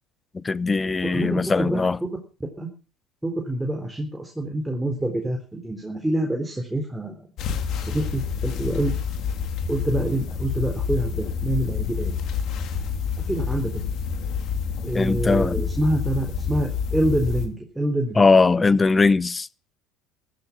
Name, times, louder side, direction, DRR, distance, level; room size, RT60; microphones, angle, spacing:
voice 1, 0.4-2.0 14.9-15.6 18.2-19.5, left 4 dB, 20° left, 0.7 m, -20 dB
voice 2, 1.0-1.8 2.6-2.7 3.2-7.2 7.8-8.9 9.7-12.1 13.3-13.8 14.8-18.3, right 1 dB, 10° right, 4.1 m, -26 dB
sound 1, 7.4-17.5, left 6 dB, 55° left, 3.2 m, -28 dB
15.0 x 12.5 x 6.2 m
hypercardioid pair, 70°, 0 cm